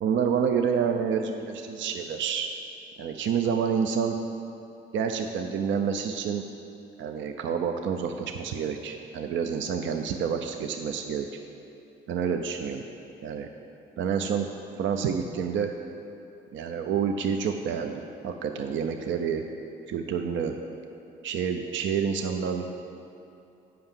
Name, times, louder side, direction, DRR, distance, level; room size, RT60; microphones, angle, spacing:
voice 1, 0.0-2.5 3.0-4.2 4.9-6.4 7.0-11.3 12.1-12.8 13.2-13.5 14.0-14.5 14.8-15.7 16.5-19.4 19.9-20.5 21.2-22.7, right 7 dB, 70° right, 5 dB, 0.5 m, -28 dB
7.7 x 5.6 x 7.2 m, 2.7 s
cardioid pair, 90°, 20 cm